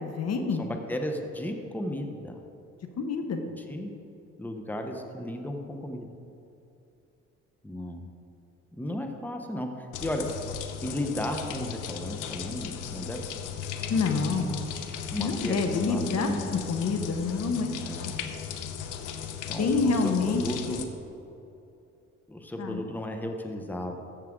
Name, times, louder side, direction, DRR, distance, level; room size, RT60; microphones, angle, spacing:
voice 1, 0.0-0.7 3.0-3.5 13.9-14.6 15.2-17.7 18.0-18.1 19.6-20.4 20.7-20.8 22.6-22.8, left 4 dB, 55° left, 5 dB, 1.1 m, -27 dB
voice 2, 0.6-2.4 3.6-3.9 4.4-6.1 7.6-8.1 8.7-10.2 10.8-13.4 15.1-16.6 17.8-18.2 19.5-20.8 22.3-24.0, left 1 dB, 5° left, 4 dB, 0.9 m, -34 dB
sound 1, 9.9-20.8, left 7 dB, 90° left, 0.8 m, -36 dB
14.0 x 7.4 x 3.7 m, 2.8 s
cardioid pair, 90°, 30 cm